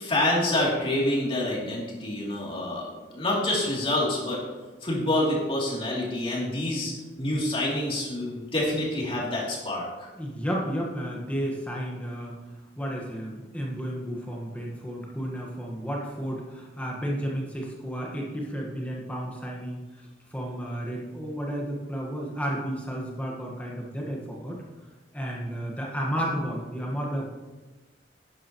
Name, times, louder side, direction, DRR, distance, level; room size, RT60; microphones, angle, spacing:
voice 1, 0.0-4.4 4.8-10.1, left 1 dB, 30° left, -4 dB, 3.0 m, -27 dB
voice 2, 10.2-12.3 12.8-19.8 20.3-24.6 25.1-27.3, equal, 10° left, -2 dB, 1.4 m, -32 dB
12.0 x 9.7 x 3.1 m, 1.2 s
head